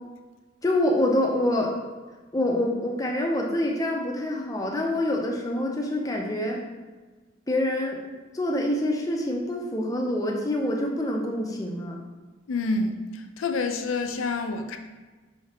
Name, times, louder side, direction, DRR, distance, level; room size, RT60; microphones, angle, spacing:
voice 1, 0.6-1.7 2.3-6.6 7.5-8.0 8.3-12.0, left 1 dB, 15° left, 0 dB, 0.5 m, -26 dB
voice 2, 12.5-14.8, left 3 dB, 85° left, 7 dB, 0.4 m, -28 dB
5.6 x 3.3 x 2.8 m, 1.3 s
head